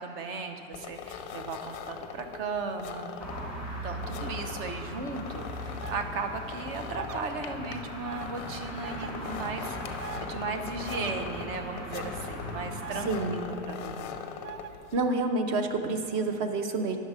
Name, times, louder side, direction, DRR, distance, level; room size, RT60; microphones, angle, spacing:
voice 1, 0.0-3.1 3.8-14.2, right 4 dB, 45° right, 6 dB, 0.9 m, -36 dB
sound 1, 0.7-15.1, left 7 dB, 30° left, 0.5 m, -42 dB
sound 2, 3.2-13.2, equal, 5° right, 1.4 m, -39 dB
sound 3, 5.8-6.0 7.0-7.2 8.1-8.3 8.8-9.1 10.0-10.2 10.9-11.2 12.8-13.1 14.4-14.7, right 9 dB, 80° right, 0.6 m, -41 dB
voice 2, 13.1-13.4 14.9-17.0, right 3 dB, 25° right, 7 dB, 0.4 m, -28 dB
10.0 x 6.5 x 4.8 m, 3.0 s
supercardioid pair, 150°, 39 cm